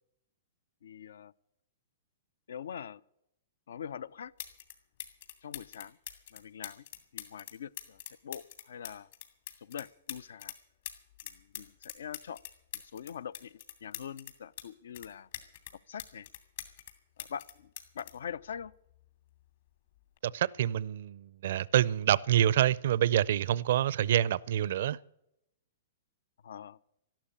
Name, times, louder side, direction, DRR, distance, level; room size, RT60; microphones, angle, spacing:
voice 1, 0.8-1.3 2.5-3.0 3.7-4.3 5.4-6.0 6.3-6.9 7.1-9.1 9.6-10.6 11.2-12.4 12.7-15.3 15.9-16.3 17.2-18.7 26.4-26.8, left 8 dB, 80° left, 0.5 m, -43 dB
sound 1, 3.9-4.0 4.4-4.7 5.0-10.6 10.8-14.7 14.9-16.9 17.2-19.0 20.0-20.2, left 11 dB, 60° left, 2.6 m, -44 dB
voice 2, 20.2-25.0, right 11 dB, 65° right, 0.5 m, -27 dB
13.0 x 12.0 x 8.6 m
hypercardioid pair, 145°, 0 cm